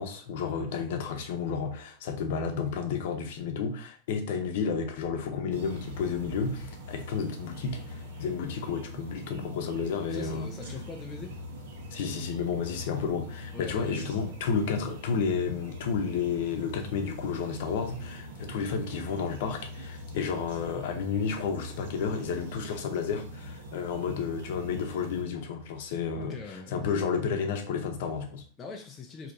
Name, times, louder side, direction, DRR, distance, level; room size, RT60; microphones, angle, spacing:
voice 1, 0.0-10.5 11.9-28.4, left 6 dB, 60° left, 0.7 m, -31 dB
sound 1, 5.5-25.2, left 1 dB, 80° right, 1.0 m, -43 dB
voice 2, 10.1-11.4 13.5-14.3 26.1-26.7 28.6-29.3, left 4 dB, 15° left, 0.4 m, -42 dB
4.7 x 2.8 x 2.6 m
supercardioid pair, 170°, 0 cm